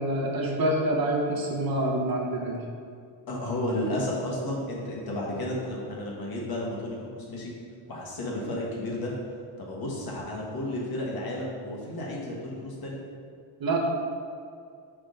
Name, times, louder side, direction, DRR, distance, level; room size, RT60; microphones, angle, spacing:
voice 1, 0.0-2.6 13.6-13.9, right 1 dB, 45° right, -1 dB, 0.9 m, -26 dB
voice 2, 3.3-7.5 7.9-9.1 9.6-13.0, left 1 dB, 45° left, -3 dB, 1.5 m, -32 dB
5.5 x 3.6 x 5.2 m, 2.3 s
cardioid pair, 135°, 50 cm